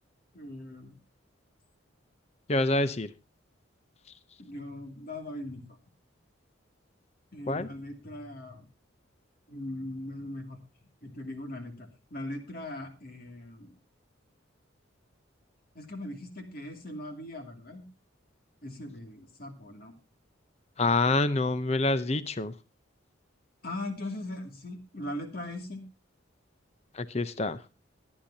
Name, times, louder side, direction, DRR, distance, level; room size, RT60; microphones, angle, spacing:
voice 1, 0.3-1.0 4.4-5.8 7.3-8.7 9.5-10.6 11.0-13.7 15.7-17.9 18.6-19.9 23.6-25.8, left 1 dB, 45° left, 2.4 m, -40 dB
voice 2, 2.5-3.1 7.5-7.7 20.8-22.5 26.9-27.6, left 2 dB, 30° left, 0.6 m, -26 dB
23.0 x 8.8 x 2.7 m
head